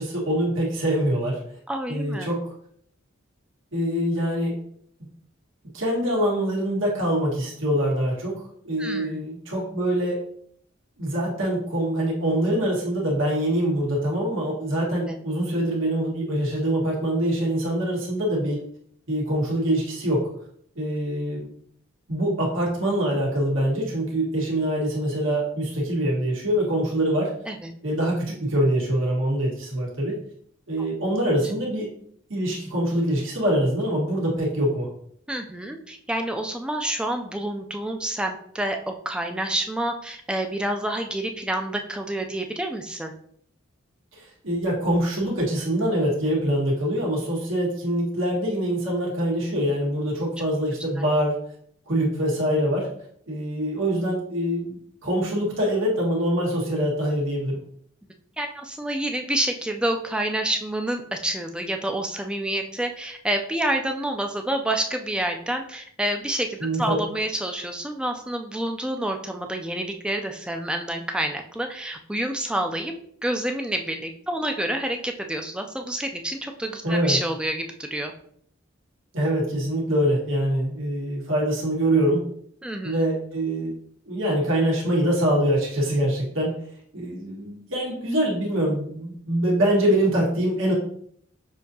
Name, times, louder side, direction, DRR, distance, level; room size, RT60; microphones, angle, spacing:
voice 1, 0.0-1.4 1.9-2.4 3.7-4.5 5.7-10.2 11.0-18.6 19.1-20.3 20.7-21.5 22.1-27.3 27.8-30.1 30.7-31.9 32.3-34.9 44.1-51.4 51.9-52.9 53.3-57.6 66.6-67.0 76.8-77.2 79.1-82.3 82.8-83.7 84.0-86.6 86.9-90.7, right 1 dB, 80° right, -4 dB, 1.6 m, -24 dB
voice 2, 1.7-2.3 8.8-9.2 15.1-15.2 27.5-27.7 30.8-30.9 35.3-43.1 51.0-51.1 58.4-72.9 73.2-78.1 82.6-83.0, right 1 dB, 5° right, 4 dB, 0.3 m, -28 dB
6.5 x 2.7 x 2.7 m, 0.64 s
head